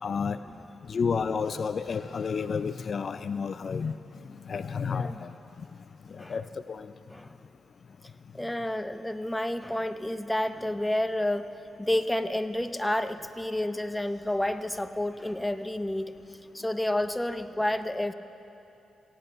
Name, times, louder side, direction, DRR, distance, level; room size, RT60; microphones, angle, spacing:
voice 1, 0.0-0.4 0.9-4.0 4.2-5.3 5.6-5.7 6.1-6.9, left 5 dB, 55° left, 12 dB, 0.3 m, -31 dB
sound 1, 1.8-3.3, equal, 25° right, 3.3 m, -54 dB
voice 2, 4.9-5.2 6.2-6.4 7.1-7.4 8.3-11.5 11.8-18.1, left 1 dB, 10° left, 10 dB, 0.7 m, -30 dB
16.5 x 9.1 x 6.7 m, 2.9 s
supercardioid pair, 45°, 0 cm